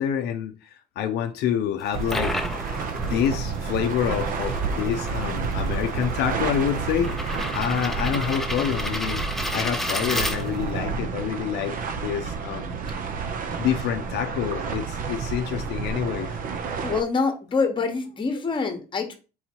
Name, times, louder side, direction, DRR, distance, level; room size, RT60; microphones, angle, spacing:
voice 1, 0.0-2.3 3.0-9.2 9.5-12.8 13.6-16.4, left 9 dB, 75° left, 0.5 m, -27 dB
sound 1, 1.8-10.8, left 1 dB, ahead, 0.5 m, -33 dB
sound 2, 1.9-17.0, right 5 dB, 55° right, 0.6 m, -30 dB
voice 2, 16.8-19.1, left 4 dB, 30° left, 1.0 m, -25 dB
4.0 x 2.9 x 4.4 m
cardioid pair, 110°, 17 cm